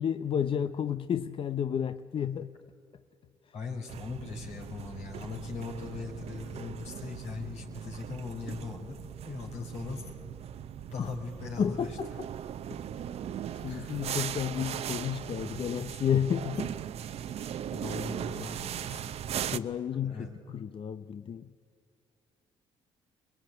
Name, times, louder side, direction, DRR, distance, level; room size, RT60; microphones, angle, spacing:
voice 1, 0.0-2.5 11.0-11.1 11.6-12.3 13.6-16.8 19.5-21.5, left 8 dB, 50° left, 0.7 m, -31 dB
voice 2, 3.5-9.0 9.2-10.0 10.9-11.9 13.7-14.0 17.2-17.3 17.7-19.2 20.0-20.3, left 4 dB, 80° left, 4.8 m, -40 dB
sound 1, 3.9-19.6, right 9 dB, 70° right, 0.8 m, -39 dB
25.0 x 20.5 x 9.3 m
supercardioid pair, 65°, 11 cm